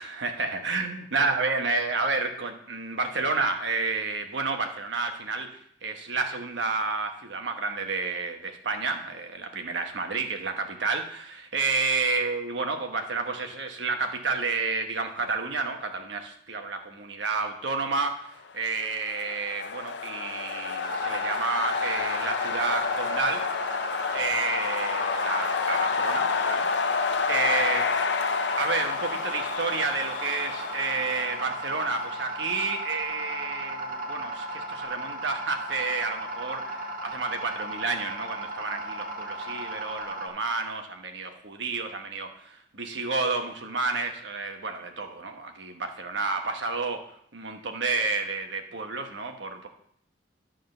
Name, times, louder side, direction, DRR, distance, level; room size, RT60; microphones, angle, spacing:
voice 1, 0.0-23.4 24.1-26.8 27.2-28.0 28.6-47.0 47.3-49.7, right 3 dB, 75° right, 5 dB, 1.2 m, -30 dB
sound 1, 18.7-32.4, left 5 dB, 70° left, 0.6 m, -29 dB
sound 2, 20.8-40.3, right 1 dB, 50° right, 1.7 m, -36 dB
11.5 x 3.8 x 6.5 m, 0.67 s
head